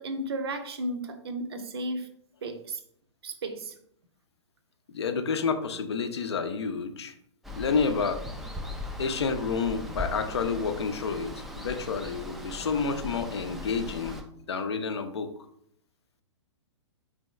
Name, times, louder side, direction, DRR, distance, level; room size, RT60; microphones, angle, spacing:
voice 1, 0.0-2.1 2.4-2.8 3.2-3.7, right 1 dB, 55° right, 7 dB, 0.6 m, -34 dB
voice 2, 4.9-7.1 7.5-8.2 9.0-14.2 14.5-15.3, left 5 dB, 60° left, 8 dB, 0.5 m, -29 dB
Water, 7.4-14.2, left 1 dB, ahead, 0.3 m, -39 dB
3.7 x 3.4 x 3.1 m, 0.68 s
figure-of-eight pair, 115°, 15 cm